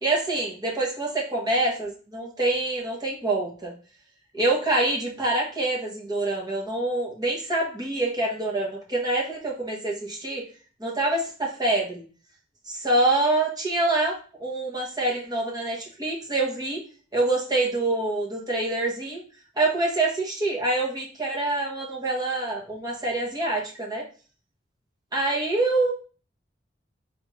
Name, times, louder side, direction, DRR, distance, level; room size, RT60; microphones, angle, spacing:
voice 1, 0.0-3.7 4.3-10.5 10.8-12.0 12.7-16.8 17.1-19.2 19.6-24.0 25.1-25.9, right 2 dB, 20° right, -2 dB, 1.2 m, -26 dB
3.7 x 3.4 x 3.2 m, 0.37 s
head